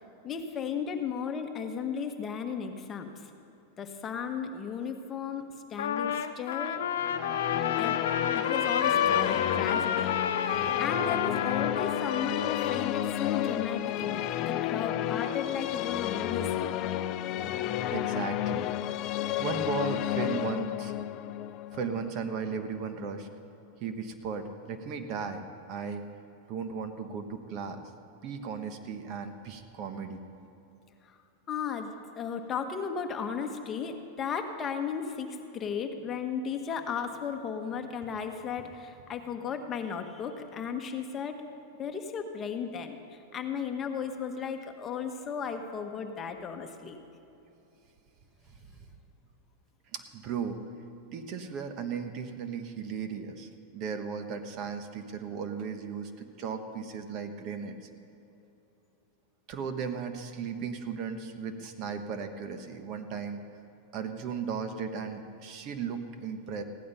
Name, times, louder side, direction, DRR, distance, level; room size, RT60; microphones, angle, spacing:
voice 1, 0.2-3.2 3.8-6.8 7.8-8.0 8.3-10.1 10.4-16.7 31.5-41.5 41.8-43.0 43.3-47.0, left 6 dB, 25° left, 5 dB, 1.2 m, -35 dB
Trumpet, 5.8-12.9, left 8 dB, 85° left, 0.8 m, -30 dB
sound 1, 7.0-23.0, left 12 dB, 45° left, 0.5 m, -32 dB
voice 2, 17.9-18.7 19.4-20.9 21.7-23.3 23.8-26.0 26.5-27.8 28.2-30.2 49.9-50.6 51.1-57.8 59.5-63.4 63.9-66.6, right 6 dB, 45° right, 7 dB, 1.2 m, -36 dB
16.0 x 11.0 x 5.5 m, 2.9 s
supercardioid pair, 130°, 0 cm